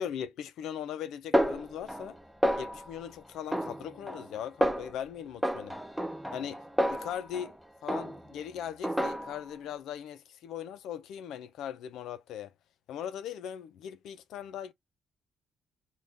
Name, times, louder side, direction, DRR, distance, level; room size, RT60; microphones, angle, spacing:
voice 1, 0.0-2.2 2.6-5.8 6.3-6.6 6.9-7.6 7.8-12.5 12.9-14.7, left 9 dB, 80° left, 0.4 m, -39 dB
Snare drum, 1.3-2.2 2.4-3.0 3.5-4.3 4.6-5.0 5.4-7.5 7.9-8.4 8.8-9.5, equal, 5° right, 0.4 m, -30 dB
3.4 x 2.3 x 2.6 m
cardioid pair, 90°, 0 cm